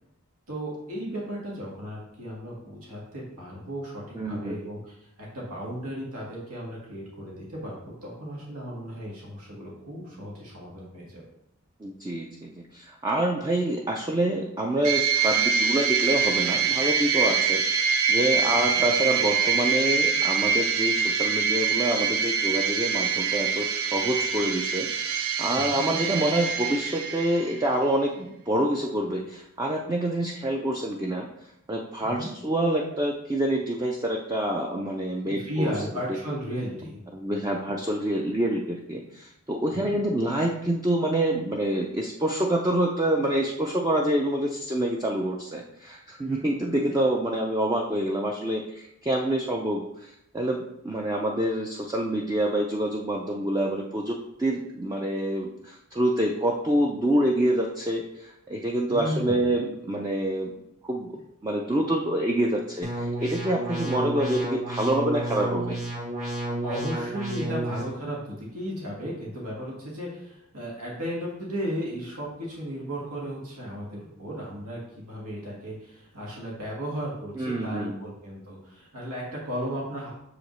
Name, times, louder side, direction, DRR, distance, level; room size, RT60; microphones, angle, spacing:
voice 1, 0.5-11.2 18.5-18.6 25.5-25.8 32.0-32.3 35.2-37.0 39.7-39.9 46.2-46.6 58.9-59.4 66.6-80.1, equal, 85° right, -4 dB, 1.7 m, -35 dB
voice 2, 4.1-4.6 11.8-35.7 36.1-36.2 37.1-60.5 60.8-61.2 61.4-65.8 77.4-78.0, right 1 dB, 15° right, 0 dB, 0.4 m, -27 dB
sound 1, 14.8-27.7, right 6 dB, 70° right, 0.5 m, -25 dB
sound 2, 62.8-67.8, right 1 dB, 35° right, 2.0 m, -31 dB
6.6 x 5.0 x 3.1 m, 0.80 s
head